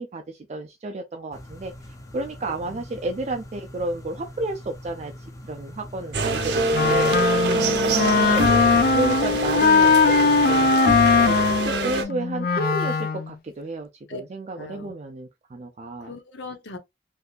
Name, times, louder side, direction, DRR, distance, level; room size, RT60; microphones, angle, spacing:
voice 1, 0.0-1.7 2.1-7.4 7.8-8.5 8.9-10.9 11.3-16.1, right 2 dB, 35° right, 0.4 m, -32 dB
sound 1, 1.3-10.8, left 1 dB, 20° left, 0.6 m, -42 dB
voice 2, 2.4-2.8 7.4-8.1 14.1-14.2 14.6-14.9 16.0-16.8, left 3 dB, 75° left, 0.7 m, -38 dB
sound 2, 6.1-12.0, right 2 dB, 65° right, 0.7 m, -24 dB
Wind instrument woodwind instrument, 6.7-13.3, left 4 dB, 55° left, 0.3 m, -20 dB
3.5 x 2.7 x 2.3 m
head